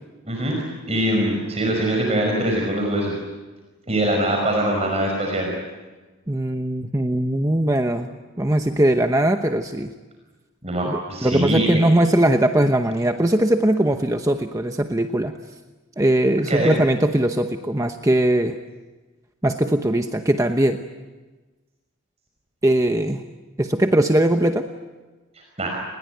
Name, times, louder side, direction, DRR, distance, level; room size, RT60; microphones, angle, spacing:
voice 1, 0.2-0.6 0.9-3.1 3.9-5.5 10.6-11.8 16.5-16.7 25.4-25.7, right 1 dB, 30° right, 1 dB, 5.4 m, -23 dB
voice 2, 6.3-8.1 8.4-9.9 10.8-15.3 16.0-18.6 19.4-20.8 22.6-23.2 23.6-24.7, right 1 dB, 15° right, 6 dB, 0.9 m, -20 dB
30.0 x 20.5 x 9.2 m, 1.2 s
head